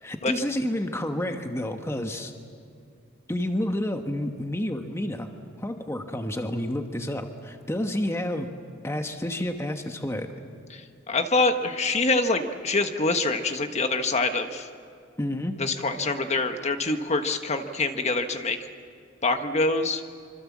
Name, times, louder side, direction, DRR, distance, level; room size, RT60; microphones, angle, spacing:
voice 1, 0.0-2.3 3.3-5.3 5.6-8.5 8.8-10.3 15.2-15.6, left 1 dB, 15° left, 5 dB, 1.2 m, -29 dB
voice 2, 11.1-14.7 15.6-18.6 19.2-20.0, left 3 dB, 35° left, 7 dB, 1.3 m, -25 dB
25.5 x 25.5 x 7.4 m, 2.4 s
head